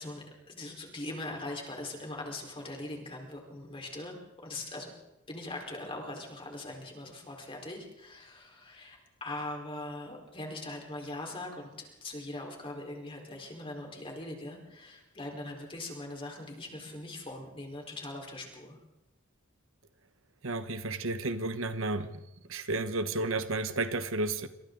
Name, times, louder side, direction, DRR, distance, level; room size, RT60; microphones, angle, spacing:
voice 1, 0.0-4.2 4.4-4.9 5.3-18.8, left 2 dB, 25° left, 0 dB, 4.5 m, -41 dB
voice 2, 20.4-22.1 22.5-24.5, right 2 dB, 65° right, 10 dB, 1.2 m, -32 dB
28.0 x 26.0 x 4.0 m, 0.96 s
head